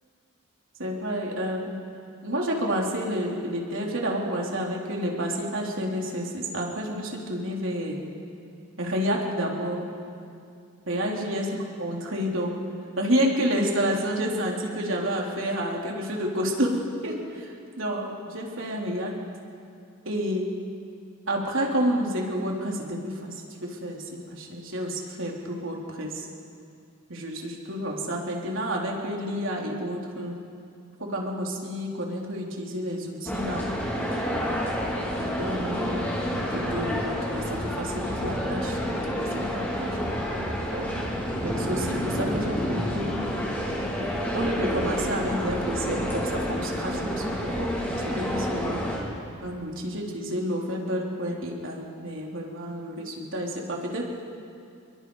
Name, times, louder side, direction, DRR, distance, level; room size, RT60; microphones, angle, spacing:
voice 1, 0.8-1.8 2.2-8.0 8.8-9.9 10.9-11.5 11.8-12.6 13.0-19.1 20.1-20.5 21.3-23.3 23.6-26.3 27.1-30.4 31.0-33.7 35.2-36.1 36.5-38.8 39.1-40.0 40.7-43.3 44.3-48.8 49.4-54.0, equal, 65° right, -1 dB, 3.6 m, -30 dB
sound 1, 33.3-49.0, equal, 10° left, 4.2 m, -29 dB
28.5 x 22.5 x 4.9 m, 2.4 s
head